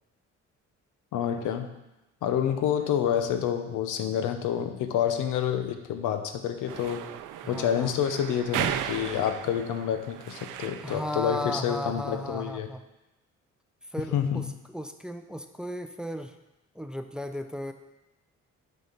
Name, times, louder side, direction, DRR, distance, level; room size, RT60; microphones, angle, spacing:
voice 1, 1.1-1.7 2.2-7.0 7.5-12.7 14.1-14.5, left 9 dB, 90° left, 7 dB, 0.9 m, -28 dB
sound 1, 6.7-11.2, right 11 dB, 85° right, 0.5 m, -35 dB
voice 2, 7.4-8.0 10.8-12.8 13.9-16.4 16.7-17.7, equal, 5° right, 8 dB, 0.6 m, -35 dB
7.6 x 5.6 x 5.7 m, 0.98 s
cardioid pair, 90°, 30 cm